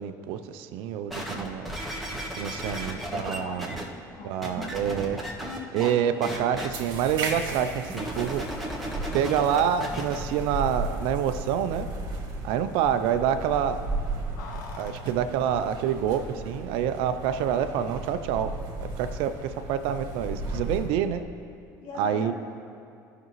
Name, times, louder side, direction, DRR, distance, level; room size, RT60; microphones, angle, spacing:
voice 1, 0.0-1.7 2.4-3.8 4.2-5.2 5.7-8.4 9.1-11.9 12.4-13.8 14.8-18.5 18.8-21.2 22.0-22.3, right 9 dB, 70° right, 11 dB, 0.5 m, -27 dB
sound 1, 1.1-3.8 4.4-5.9 6.2-6.7 7.9-10.2 10.8-10.9, right 1 dB, ahead, 1.6 m, -34 dB
voice 2, 2.7-5.0 21.8-22.3, left 4 dB, 60° left, 0 dB, 1.6 m, -42 dB
sound 2, 6.7-20.9, right 2 dB, 55° right, 1.6 m, -35 dB
Keys jangling, 14.4-16.7 17.0-17.1, left 4 dB, 80° left, 1.0 m, -46 dB
14.0 x 6.0 x 3.1 m, 2.4 s
hypercardioid pair, 75°, 9 cm